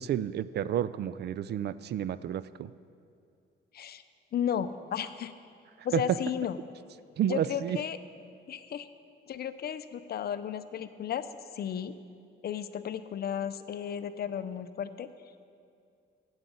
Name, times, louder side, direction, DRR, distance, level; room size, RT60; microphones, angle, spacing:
voice 1, 0.0-2.7 5.9-6.0 7.2-7.8, right 10 dB, 55° right, 16 dB, 0.4 m, -30 dB
voice 2, 4.3-5.3 5.8-6.6 7.3-8.0 8.5-8.9 9.3-11.3 11.5-12.0 12.4-15.1, left 8 dB, 50° left, 12 dB, 0.6 m, -34 dB
9.2 x 8.1 x 7.5 m, 2.4 s
cardioid pair, 90°, 20 cm